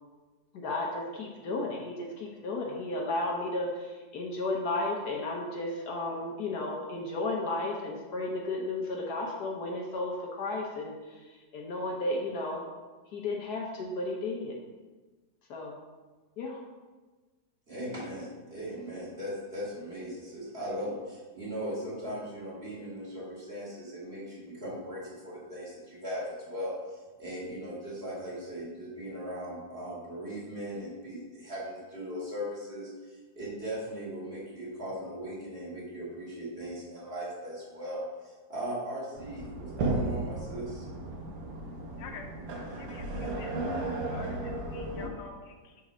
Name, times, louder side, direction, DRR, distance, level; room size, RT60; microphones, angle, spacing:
voice 1, 0.5-12.7 13.1-14.5 15.5-15.7 16.4-16.6, left 2 dB, 65° left, -1 dB, 1.2 m, -33 dB
voice 2, 17.7-40.9, equal, 35° right, -7 dB, 2.1 m, -38 dB
sound 1, 39.2-45.1, right 2 dB, 90° right, 1.7 m, -35 dB
voice 3, 42.8-43.9 44.1-45.8, left 5 dB, 85° left, 4 dB, 1.4 m, -48 dB
5.9 x 4.1 x 4.9 m, 1.3 s
omnidirectional pair, 2.0 m